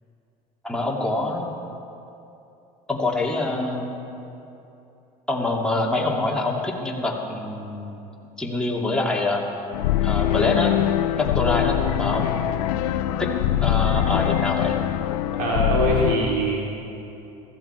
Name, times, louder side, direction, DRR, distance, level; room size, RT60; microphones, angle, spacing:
voice 1, 0.6-1.5 2.9-3.9 5.3-8.0 8.4-9.4 10.0-10.8 11.2-12.6 13.2-13.3 13.6-14.8, left 2 dB, 5° left, -3 dB, 2.6 m, -25 dB
sound 1, 9.7-16.2, left 12 dB, 85° left, 0.5 m, -23 dB
voice 2, 15.3-16.7, right 1 dB, 85° right, -4 dB, 3.1 m, -22 dB
15.5 x 14.5 x 4.5 m, 2.8 s
supercardioid pair, 85°, 19 cm